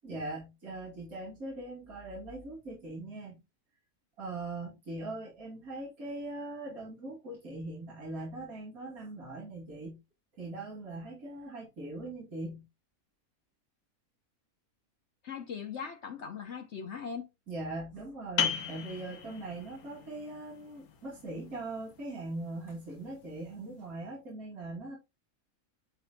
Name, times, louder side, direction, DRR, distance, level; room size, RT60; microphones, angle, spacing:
voice 1, 0.0-3.4 4.2-10.0 10.4-12.6 17.5-25.0, right 2 dB, 80° right, 3.1 m, -41 dB
voice 2, 15.2-17.3, left 6 dB, 55° left, 1.0 m, -39 dB
sound 1, 18.4-23.7, left 7 dB, 80° left, 1.4 m, -38 dB
10.5 x 4.1 x 2.2 m
omnidirectional pair, 1.5 m